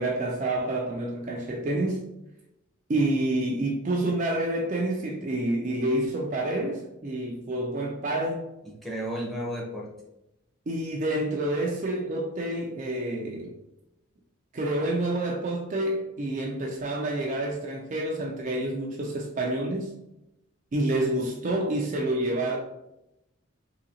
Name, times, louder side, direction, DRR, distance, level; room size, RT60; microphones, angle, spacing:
voice 1, 0.0-2.0 2.9-8.4 10.7-13.5 14.5-19.9 20.7-22.6, right 1 dB, 35° right, 0 dB, 0.4 m, -28 dB
voice 2, 8.6-9.9, equal, ahead, -3 dB, 0.7 m, -33 dB
3.8 x 2.8 x 2.8 m, 0.88 s
head